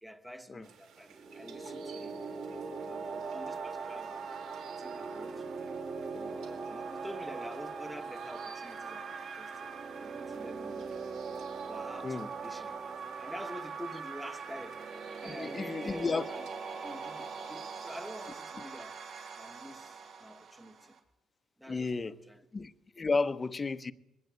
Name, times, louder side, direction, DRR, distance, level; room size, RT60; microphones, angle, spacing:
voice 1, 0.0-2.2 2.7-4.2 4.8-5.6 6.1-9.7 10.0-10.9 11.7-12.8 13.2-14.9 15.2-16.5 16.8-19.0 19.3-21.0 21.6-22.4, equal, ahead, 1.2 m, -47 dB
sound 1, 0.6-18.3, right 6 dB, 75° right, 3.3 m, -58 dB
sound 2, 1.1-21.0, right 5 dB, 55° right, 3.2 m, -41 dB
voice 2, 15.2-16.3 21.7-22.2 22.5-23.9, left 4 dB, 25° left, 0.8 m, -32 dB
21.0 x 18.0 x 8.1 m
cardioid pair, 125°, 0 cm